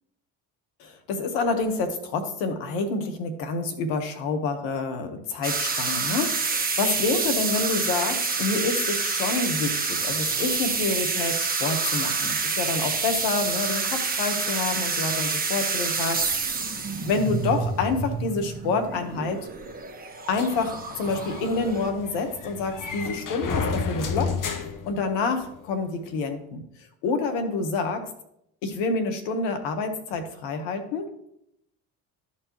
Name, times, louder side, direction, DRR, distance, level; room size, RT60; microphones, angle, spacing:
voice 1, 0.8-16.2 16.5-16.6 17.0-19.4 20.3-24.4 24.8-26.6 27.0-28.0 28.6-31.1, left 4 dB, 75° left, 7 dB, 1.4 m, -28 dB
sound 1, 5.4-21.9, right 4 dB, 20° right, 1.5 m, -28 dB
sound 2, 20.3-25.6, left 5 dB, 45° left, 1.1 m, -32 dB
13.0 x 4.4 x 3.1 m, 0.76 s
hypercardioid pair, 60°, 43 cm